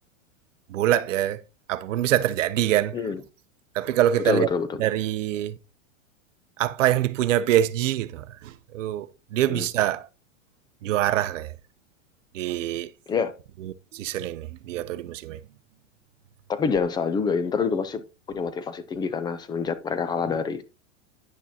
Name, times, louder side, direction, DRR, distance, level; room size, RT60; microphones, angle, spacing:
voice 1, 0.7-1.4 1.7-3.0 3.7-4.5 4.8-5.6 6.6-10.1 10.8-11.5 12.3-12.9 13.6-15.4, right 12 dB, 85° right, 0.7 m, -25 dB
voice 2, 4.2-4.8 9.5-9.7 13.1-13.3 16.5-18.0 18.3-20.6, left 5 dB, 10° left, 0.4 m, -26 dB
10.0 x 6.1 x 2.8 m
supercardioid pair, 140°, 37 cm